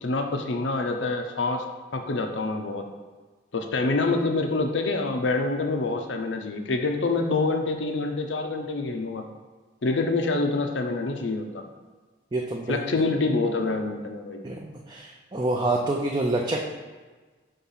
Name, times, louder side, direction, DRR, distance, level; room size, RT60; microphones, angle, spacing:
voice 1, 0.0-1.6 1.9-2.9 3.5-9.2 9.8-11.6 12.7-14.4, left 3 dB, 75° left, 4 dB, 0.6 m, -26 dB
voice 2, 12.3-12.8 14.4-16.6, right 2 dB, 25° right, -1 dB, 0.5 m, -27 dB
5.6 x 3.6 x 5.6 m, 1.3 s
head